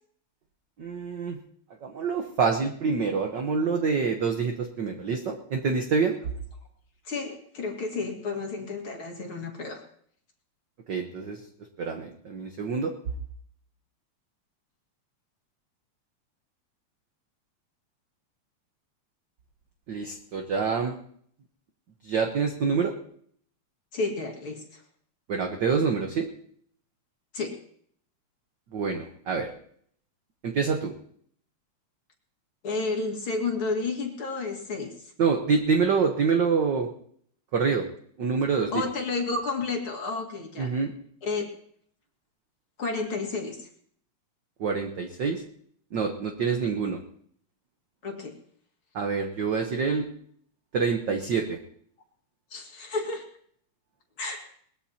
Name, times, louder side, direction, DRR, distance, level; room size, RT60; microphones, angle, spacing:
voice 1, 0.8-1.4 1.8-6.2 10.9-11.4 11.8-12.9 19.9-20.9 22.0-22.9 25.3-26.3 28.7-29.5 30.4-30.9 35.2-36.9 37.5-37.8 38.2-38.8 40.6-40.9 44.6-45.4 45.9-47.0 48.9-50.1 50.7-51.6, right 5 dB, 60° right, 3 dB, 1.1 m, -26 dB
voice 2, 7.0-9.8 23.9-24.8 27.3-27.5 32.6-35.1 38.7-40.7 41.2-41.5 42.8-43.7 48.0-48.3 52.5-53.2 54.2-54.5, left 3 dB, 50° left, 2 dB, 2.6 m, -31 dB
21.5 x 20.0 x 2.9 m, 0.63 s
omnidirectional pair, 3.3 m